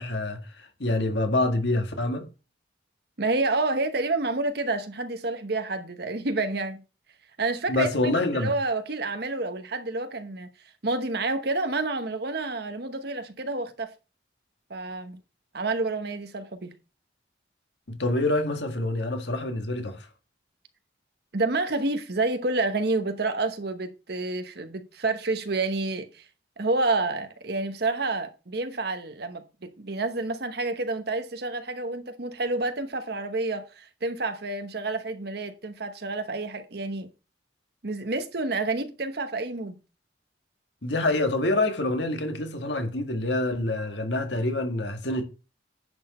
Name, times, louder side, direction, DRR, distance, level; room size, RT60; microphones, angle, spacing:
voice 1, 0.0-2.3 7.7-8.5 17.9-20.1 40.8-45.2, left 2 dB, 65° left, 1.9 m, -26 dB
voice 2, 3.2-6.8 7.4-10.5 10.8-13.9 14.7-15.2 15.5-16.7 21.3-26.3 26.6-37.1 37.8-39.8, right 2 dB, 55° right, 1.0 m, -29 dB
10.5 x 6.3 x 4.3 m
head